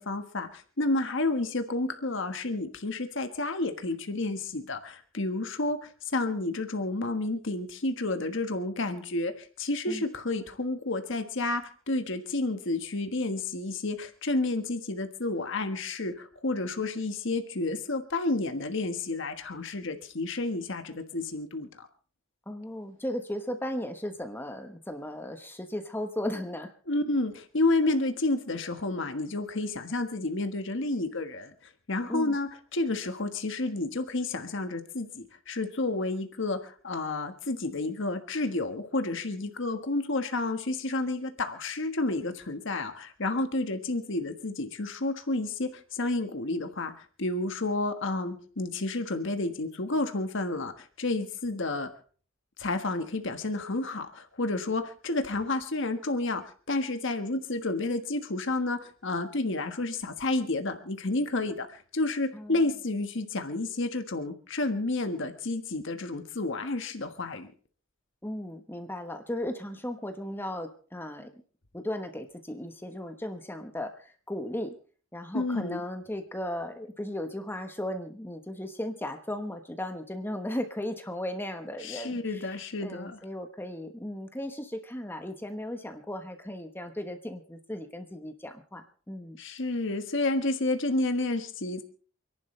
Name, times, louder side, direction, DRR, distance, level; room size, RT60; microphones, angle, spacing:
voice 1, 0.0-21.9 26.9-51.9 52.6-56.4 56.7-67.5 75.3-75.8 81.8-83.2 89.4-91.8, left 2 dB, 65° left, 7 dB, 1.5 m, -30 dB
voice 2, 22.5-26.7 32.1-32.4 62.3-62.7 68.2-71.4 71.7-74.7 75.1-89.4, left 1 dB, 10° left, 6 dB, 1.1 m, -36 dB
28.5 x 11.5 x 3.3 m, 0.42 s
head